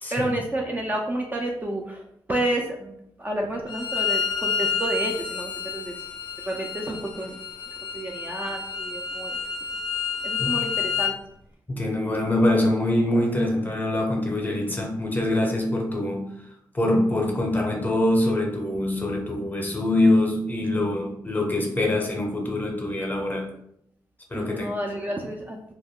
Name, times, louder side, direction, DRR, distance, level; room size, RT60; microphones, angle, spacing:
voice 1, 0.1-6.0 6.4-7.4 7.9-9.4 10.2-11.2 13.1-13.2 24.3-25.6, right 1 dB, 20° right, 0 dB, 0.4 m, -30 dB
Bowed string instrument, 3.7-11.1, left 6 dB, 65° left, 0.4 m, -29 dB
voice 2, 11.7-16.2 16.7-23.5 24.3-24.7, left 1 dB, 20° left, 0 dB, 0.7 m, -24 dB
2.2 x 2.1 x 3.5 m, 0.76 s
cardioid pair, 90°, 8 cm